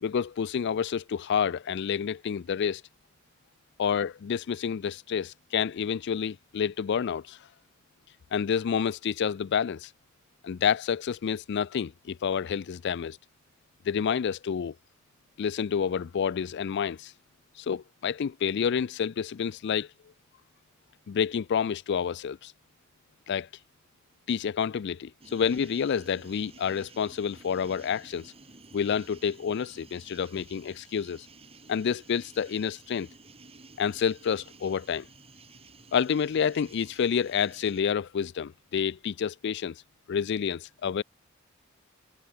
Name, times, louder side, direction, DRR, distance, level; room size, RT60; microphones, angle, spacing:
voice 1, 0.0-2.8 3.8-7.4 8.3-9.9 10.4-13.2 13.8-14.7 15.4-17.1 17.6-19.9 21.1-22.5 23.3-23.5 24.3-28.3 28.7-31.3 31.7-33.1 33.8-35.1 35.9-39.8 40.1-41.0, left 7 dB, 60° left, 0.4 m, -29 dB
sound 1, 25.2-37.8, right 3 dB, 30° right, 3.9 m, -53 dB
head